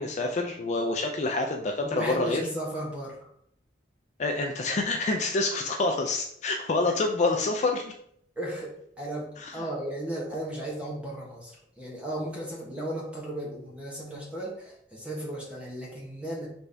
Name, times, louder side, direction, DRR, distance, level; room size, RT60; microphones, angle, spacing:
voice 1, 0.0-2.4 4.2-7.9 9.4-9.6, left 2 dB, 40° left, 3 dB, 0.4 m, -27 dB
voice 2, 1.8-3.3 8.4-16.5, right 1 dB, 5° right, -4 dB, 1.2 m, -35 dB
4.1 x 3.3 x 3.3 m, 0.68 s
head